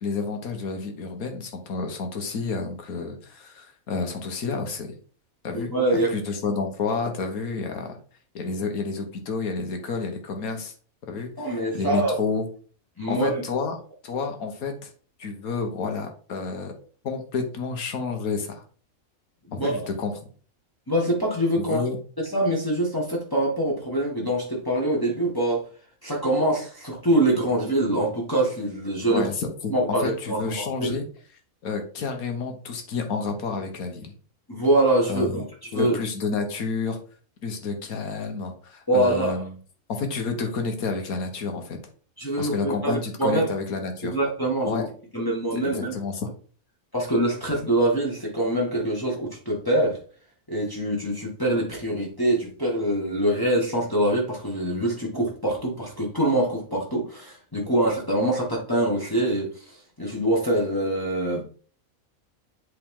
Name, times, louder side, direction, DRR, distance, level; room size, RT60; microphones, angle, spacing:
voice 1, 0.0-4.9 5.4-5.7 6.1-8.0 8.4-10.7 11.1-12.5 13.1-13.8 14.0-14.9 15.2-16.7 17.0-18.6 19.5-20.1 21.6-22.0 29.1-29.7 30.0-31.1 31.6-34.1 35.1-35.4 35.7-37.0 37.4-39.6 39.9-41.8 42.4-44.2 44.7-44.8 45.6-46.3, left 4 dB, 85° left, 1.6 m, -30 dB
voice 2, 5.5-6.1 11.4-12.2 13.0-13.4 19.5-19.7 20.9-21.8 22.3-25.6 26.0-29.3 29.7-31.0 34.5-35.4 35.7-36.0 38.9-39.4 42.2-43.5 44.1-44.9 45.1-45.9 46.9-50.0 50.5-61.4, right 1 dB, 15° left, 1.6 m, -24 dB
7.8 x 3.8 x 3.7 m
omnidirectional pair, 1.5 m